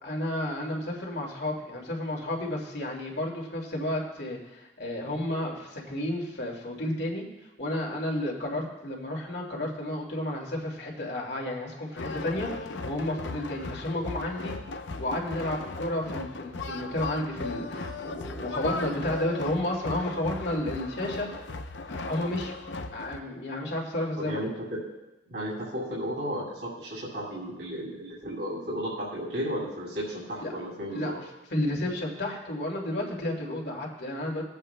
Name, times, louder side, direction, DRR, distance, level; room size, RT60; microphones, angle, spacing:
voice 1, 0.0-7.3 7.6-14.5 15.0-21.3 21.9-22.6 22.9-24.5 30.4-30.5 30.9-31.3 31.5-34.4, left 1 dB, 65° left, -1 dB, 2.4 m, -32 dB
sound 1, 12.0-23.2, left 3 dB, 85° left, 0.7 m, -37 dB
voice 2, 24.2-24.8 25.3-31.1, equal, 65° right, -6 dB, 2.7 m, -34 dB
22.0 x 8.3 x 2.2 m, 1.0 s
head